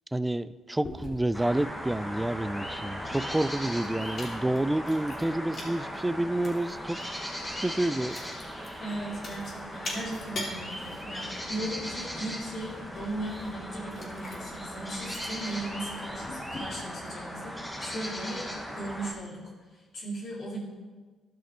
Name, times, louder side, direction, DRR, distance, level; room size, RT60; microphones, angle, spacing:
voice 1, 0.1-7.0 7.6-8.2, right 1 dB, 10° right, 15 dB, 0.3 m, -29 dB
Chewing mastication, 0.8-16.6, left 2 dB, 45° left, 2.8 m, -45 dB
sound 1, 1.3-19.1, equal, 5° left, 1.6 m, -38 dB
voice 2, 8.8-20.6, right 1 dB, 60° left, -6 dB, 2.4 m, -37 dB
12.5 x 5.9 x 4.3 m, 1.3 s
cardioid pair, 90°, 0 cm